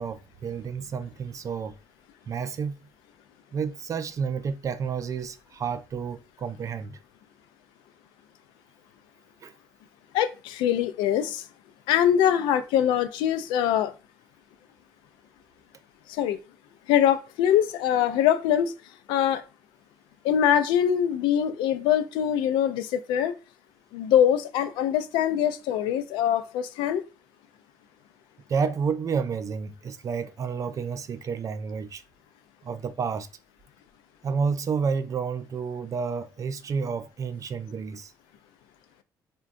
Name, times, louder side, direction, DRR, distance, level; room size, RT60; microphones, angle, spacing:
voice 1, 0.0-1.8 2.3-2.7 3.5-7.0 9.4-9.5 28.5-32.0 32.6-33.3 34.2-38.1, right 6 dB, 45° right, 0.4 m, -30 dB
voice 2, 10.1-11.4 11.9-13.9 16.1-16.4 16.9-18.7 19.1-19.4 20.2-23.3 23.9-27.0, left 10 dB, 85° left, 0.4 m, -23 dB
3.5 x 2.2 x 2.5 m
supercardioid pair, 80°, 8 cm